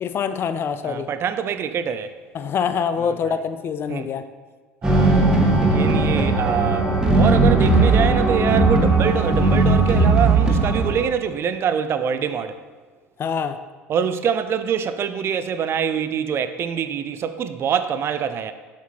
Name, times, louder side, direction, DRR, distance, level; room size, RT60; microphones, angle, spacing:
voice 1, 0.0-1.1 2.3-4.2 13.2-13.6, left 6 dB, 35° left, 0.4 m, -25 dB
voice 2, 0.8-2.2 3.9-4.1 4.8-12.6 13.9-18.5, right 7 dB, 35° right, 0.4 m, -25 dB
sound 1, 4.8-11.0, right 3 dB, 10° right, 1.3 m, -17 dB
7.2 x 5.8 x 2.9 m
figure-of-eight pair, 65°, 7 cm